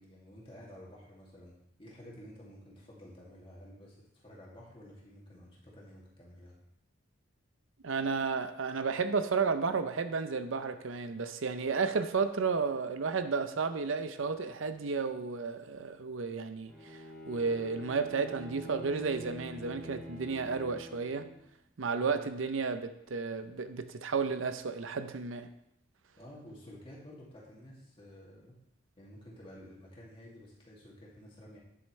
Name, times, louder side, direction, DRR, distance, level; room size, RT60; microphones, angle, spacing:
voice 1, 0.0-6.6 21.9-22.3 26.2-28.6 29.0-31.6, equal, 25° left, -5 dB, 2.3 m, -52 dB
voice 2, 7.8-21.3 21.8-25.5, right 5 dB, 70° right, 10 dB, 0.6 m, -32 dB
Bowed string instrument, 16.7-21.5, equal, 5° left, 2.3 m, -47 dB
9.9 x 7.8 x 3.2 m, 0.78 s
head